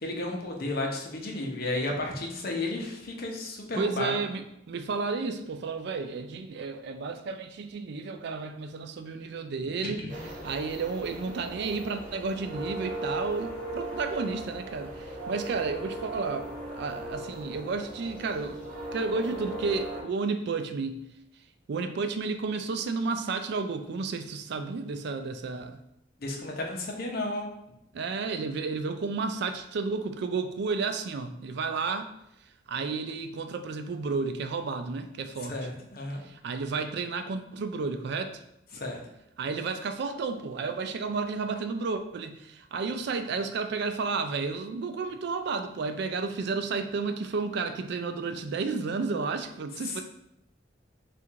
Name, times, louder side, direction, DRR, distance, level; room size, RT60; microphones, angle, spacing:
voice 1, 0.0-4.1 10.0-10.1 26.2-27.5 35.4-36.2 38.7-39.0 49.8-50.0, left 2 dB, 55° left, 1 dB, 0.8 m, -33 dB
voice 2, 3.8-10.0 10.4-18.7 18.9-21.0 21.7-25.8 27.9-32.1 32.7-35.6 36.2-38.4 39.4-50.0, right 4 dB, 60° right, 8 dB, 0.4 m, -32 dB
sound 1, 10.1-20.0, right 1 dB, 45° right, 1.1 m, -38 dB
3.6 x 2.5 x 4.4 m, 0.82 s
head